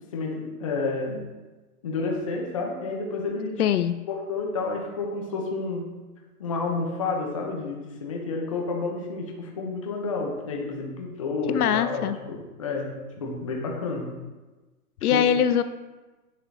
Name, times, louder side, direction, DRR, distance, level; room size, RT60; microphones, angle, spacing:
voice 1, 0.1-1.2 1.8-3.6 4.1-5.9 6.4-14.1 15.1-15.2, left 3 dB, 25° left, 0 dB, 0.6 m, -30 dB
voice 2, 3.6-3.9 11.5-12.2 15.0-15.6, left 9 dB, 75° left, 11 dB, 0.6 m, -22 dB
10.0 x 4.9 x 2.6 m, 1.2 s
hypercardioid pair, 170°, 45 cm